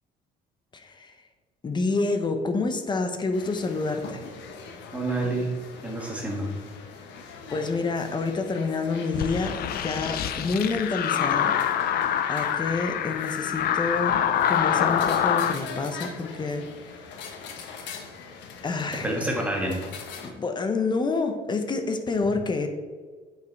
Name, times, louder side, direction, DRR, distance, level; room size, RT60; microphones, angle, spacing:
voice 1, 0.7-1.1 1.6-4.3 7.5-11.5 12.3-14.2 14.5-16.7 18.6-19.2 20.2-22.7, left 3 dB, 25° left, 6 dB, 0.9 m, -28 dB
sound 1, 3.3-20.3, left 5 dB, 70° left, 1.3 m, -43 dB
voice 2, 4.9-5.5 5.8-6.5 19.0-19.8, right 1 dB, 5° right, 0 dB, 1.8 m, -28 dB
sound 2, 9.1-15.6, left 9 dB, 55° left, 0.6 m, -25 dB
8.7 x 5.9 x 4.6 m, 1.5 s
cardioid pair, 135°, 19 cm